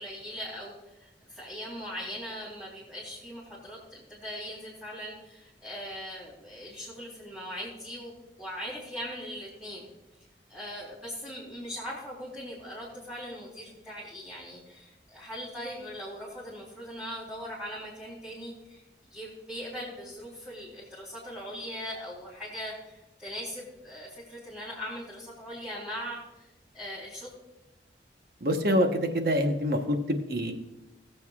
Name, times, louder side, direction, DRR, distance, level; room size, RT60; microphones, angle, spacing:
voice 1, 0.0-8.1 8.4-9.8 10.5-18.8 19.1-27.3, equal, 5° right, -9 dB, 3.6 m, -40 dB
voice 2, 28.4-30.5, equal, 55° right, 5 dB, 1.2 m, -26 dB
20.0 x 7.7 x 2.4 m, 0.98 s
head